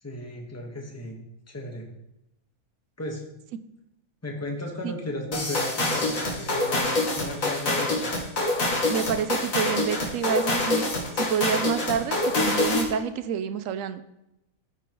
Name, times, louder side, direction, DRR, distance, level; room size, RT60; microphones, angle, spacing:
voice 1, 0.0-1.2 1.5-1.9 3.0-3.2 4.2-8.3, left 1 dB, 10° left, 1 dB, 1.2 m, -35 dB
sound 1, 5.3-13.0, left 2 dB, 70° left, 2.0 m, -26 dB
voice 2, 8.9-10.8 11.2-14.0, right 7 dB, 70° right, 11 dB, 0.9 m, -28 dB
14.0 x 5.3 x 3.0 m, 0.87 s
omnidirectional pair, 1.5 m